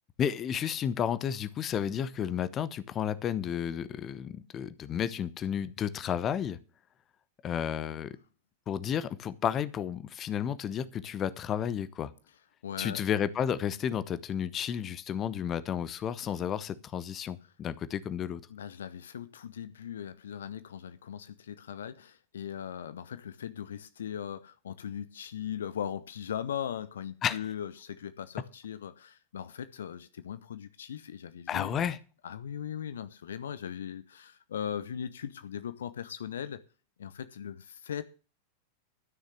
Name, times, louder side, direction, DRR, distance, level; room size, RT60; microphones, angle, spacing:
voice 1, 0.2-6.6 7.4-8.2 8.7-12.1 12.8-18.4 27.2-27.4 31.5-32.0, left 9 dB, 30° left, 0.9 m, -32 dB
voice 2, 12.6-13.0 18.5-31.8 32.2-36.6 37.0-38.0, left 9 dB, 65° left, 0.7 m, -39 dB
13.0 x 6.5 x 7.6 m
figure-of-eight pair, 90°, 0 cm